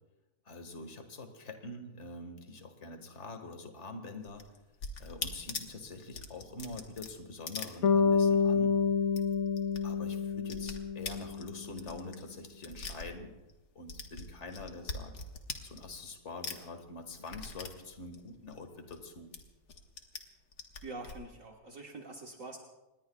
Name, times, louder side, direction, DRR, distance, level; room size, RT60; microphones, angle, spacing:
voice 1, 0.4-4.4 5.0-8.8 9.8-13.3 13.8-15.2 15.6-19.3, left 2 dB, 50° left, 6 dB, 2.0 m, -45 dB
sound 1, 4.2-8.4 8.7-8.8 9.0-9.8 10.1-13.6 13.9-16.1 16.4-19.0 19.3-20.2 20.5-21.2, left 4 dB, 85° left, 2.0 m, -42 dB
Bass guitar, 7.8-11.9, left 5 dB, 70° left, 1.2 m, -28 dB
voice 2, 20.8-22.6, right 2 dB, 55° right, 0 dB, 1.8 m, -45 dB
27.0 x 20.5 x 2.3 m, 1.0 s
omnidirectional pair, 1.6 m